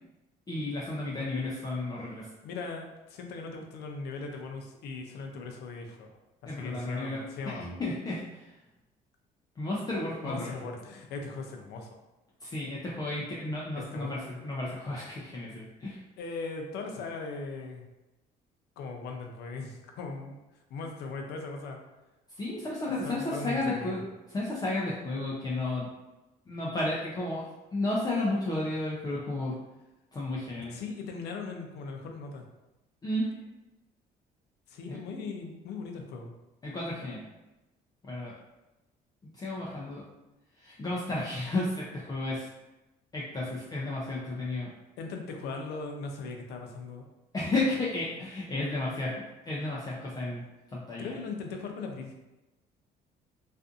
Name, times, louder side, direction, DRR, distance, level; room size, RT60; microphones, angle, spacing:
voice 1, 0.5-2.3 6.5-7.3 7.5-8.5 9.6-10.5 12.4-16.0 22.4-24.0 24.3-25.9 26.5-27.4 27.7-29.5 30.1-30.8 33.0-33.3 34.9-35.0 36.6-37.2 38.0-38.3 39.2-40.0 40.6-42.5 43.1-44.7 47.3-49.1 49.5-50.4 50.7-51.1, left 2 dB, 25° left, -5 dB, 0.4 m, -32 dB
voice 2, 2.4-7.6 10.2-11.9 13.8-14.3 16.2-17.8 18.8-20.4 20.7-21.8 22.8-24.0 30.7-32.4 34.7-36.3 45.0-47.0 51.0-52.1, left 4 dB, 75° left, 3 dB, 0.5 m, -39 dB
2.5 x 2.4 x 2.4 m, 1.0 s
cardioid pair, 110°, 17 cm